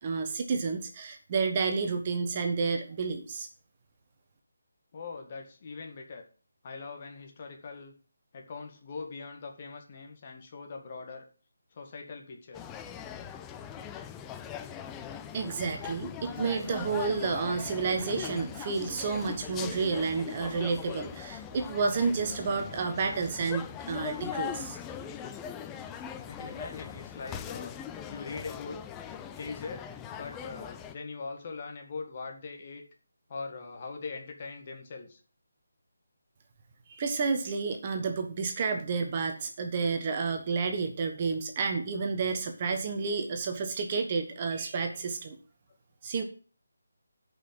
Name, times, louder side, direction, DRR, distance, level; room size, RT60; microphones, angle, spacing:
voice 1, 0.0-3.5 15.3-24.8 36.9-45.4 46.0-46.2, right 4 dB, 30° right, 5 dB, 1.2 m, -30 dB
voice 2, 4.9-6.2 6.6-7.9 8.3-11.3 11.7-12.6 26.3-27.8 28.1-28.8 29.4-29.8 30.1-32.8 33.3-35.2 43.0-43.2 44.9-45.0, left 4 dB, 35° left, 3 dB, 1.8 m, -41 dB
sound 1, 12.5-31.0, left 8 dB, 10° left, 0.5 m, -41 dB
10.0 x 5.5 x 7.8 m, 0.39 s
figure-of-eight pair, 150°, 0 cm